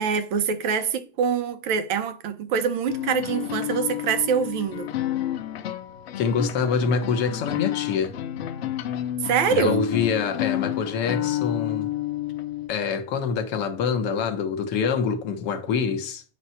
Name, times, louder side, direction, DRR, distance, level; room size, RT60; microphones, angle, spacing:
voice 1, 0.0-4.9 9.2-9.9, right 6 dB, 50° right, 0.8 m, -24 dB
sound 1, 2.9-12.7, left 13 dB, 85° left, 1.0 m, -30 dB
voice 2, 6.2-8.1 9.5-11.9 12.7-16.2, left 6 dB, 35° left, 1.0 m, -25 dB
8.7 x 3.1 x 5.6 m
supercardioid pair, 165°, 30 cm